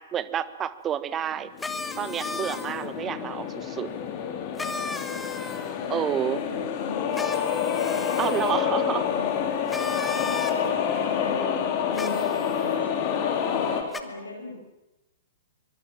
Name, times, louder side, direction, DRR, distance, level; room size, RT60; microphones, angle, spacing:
voice 1, 0.0-1.5 2.0-3.9 5.9-6.4 8.2-9.1, right 9 dB, 20° right, 15 dB, 1.3 m, -29 dB
sound 1, 1.4-13.8, left 8 dB, 40° left, 3.9 m, -28 dB
sound 2, 1.6-2.9 4.6-5.8 7.1-8.6 9.7-10.6 11.9-12.6 13.9-14.0, left 3 dB, 10° left, 1.8 m, -35 dB
voice 2, 5.8-7.3 7.8-9.4 9.8-14.5, left 2 dB, 80° left, 3 dB, 5.9 m, -38 dB
24.5 x 23.0 x 7.6 m, 0.96 s
figure-of-eight pair, 110°, 0 cm